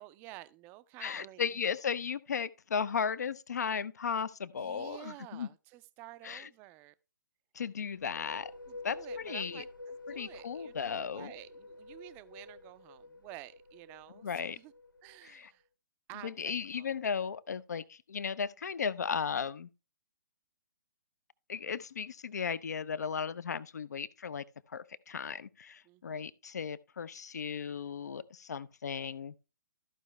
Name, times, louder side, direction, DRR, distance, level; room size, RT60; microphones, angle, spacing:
voice 1, 0.0-1.8 4.5-6.9 8.7-14.7 15.0-15.7 16.1-17.0 25.8-26.2, right 17 dB, 20° right, 0.5 m, -51 dB
voice 2, 1.0-5.5 6.2-6.5 7.5-8.5 8.8-9.0 9.2-9.6 10.1-11.3 14.2-14.6 15.2-15.5 16.2-19.7 21.5-24.4 24.7-29.3, left 6 dB, 55° left, 0.6 m, -36 dB
sound 1, 7.8-15.4, left 2 dB, 80° left, 0.8 m, -48 dB
14.0 x 5.4 x 3.1 m
figure-of-eight pair, 130°, 11 cm